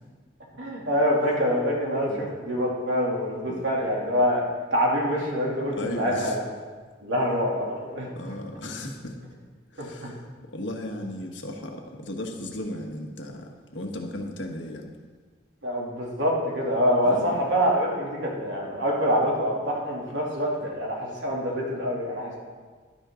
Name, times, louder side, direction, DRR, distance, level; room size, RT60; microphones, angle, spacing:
voice 1, 0.6-4.4 4.7-6.4 7.0-8.1 9.8-10.1 15.6-22.4, equal, 80° right, -3 dB, 2.9 m, -25 dB
voice 2, 5.7-6.4 8.1-9.2 9.7-10.2 10.5-14.9 17.0-17.4, left 1 dB, 75° left, 2 dB, 1.6 m, -36 dB
12.0 x 11.0 x 3.8 m, 1.5 s
head